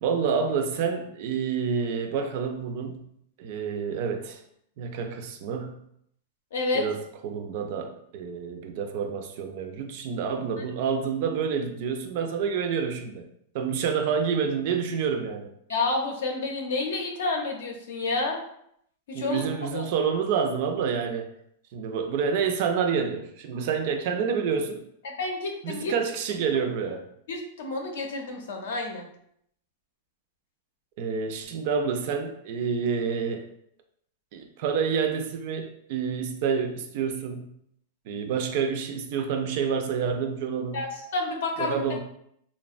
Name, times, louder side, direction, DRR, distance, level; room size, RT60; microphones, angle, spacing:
voice 1, 0.0-3.0 3.4-4.4 4.8-5.8 6.7-13.3 13.5-15.5 19.1-21.3 21.7-24.8 25.6-27.0 31.0-33.5 34.3-37.5 38.1-40.8 41.6-42.0, right 6 dB, 50° right, 6 dB, 0.3 m, -28 dB
voice 2, 6.5-6.8 15.7-18.4 19.1-19.9 25.0-25.9 27.3-29.1 40.7-42.0, left 3 dB, 80° left, 2 dB, 0.6 m, -30 dB
2.7 x 2.1 x 2.4 m, 0.72 s
supercardioid pair, 160°, 0 cm